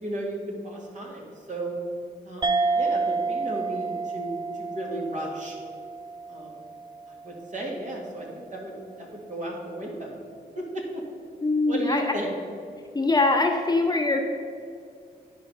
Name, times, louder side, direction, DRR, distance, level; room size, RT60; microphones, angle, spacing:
voice 1, 0.0-1.8 2.2-5.6 6.3-6.6 7.1-10.2 10.5-11.0 11.7-12.3, right 1 dB, 50° right, -2 dB, 2.1 m, -35 dB
sound 1, 2.4-7.3, right 4 dB, 25° right, 0.4 m, -29 dB
voice 2, 11.4-12.1 12.9-14.2, left 3 dB, 25° left, 2 dB, 0.9 m, -22 dB
10.0 x 4.9 x 5.6 m, 2.3 s
cardioid pair, 65°, 17 cm